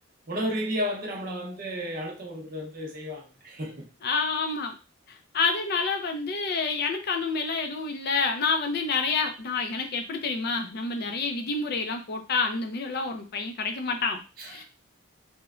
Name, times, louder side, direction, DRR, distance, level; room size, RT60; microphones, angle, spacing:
voice 1, 0.3-3.9 14.4-14.6, equal, 40° right, 0.6 m, -33 dB
voice 2, 4.0-4.8 5.3-14.6, left 4 dB, 45° left, 0.4 m, -28 dB
3.0 x 2.1 x 2.3 m
head